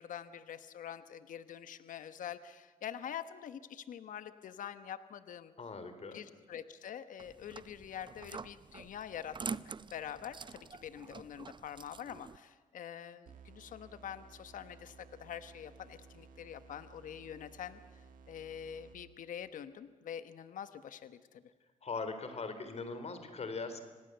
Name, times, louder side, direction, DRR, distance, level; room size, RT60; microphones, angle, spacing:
voice 1, 0.0-5.5 6.1-17.8 18.3-21.4, left 9 dB, 75° left, 12 dB, 1.1 m, -45 dB
voice 2, 5.6-6.2 21.8-23.8, left 4 dB, 50° left, 9 dB, 3.7 m, -40 dB
sound 1, 7.2-12.4, right 5 dB, 35° right, 0.7 m, -46 dB
sound 2, 13.3-19.3, right 5 dB, 80° right, 2.0 m, -57 dB
26.5 x 18.0 x 8.0 m, 1.3 s
cardioid pair, 65°, 14 cm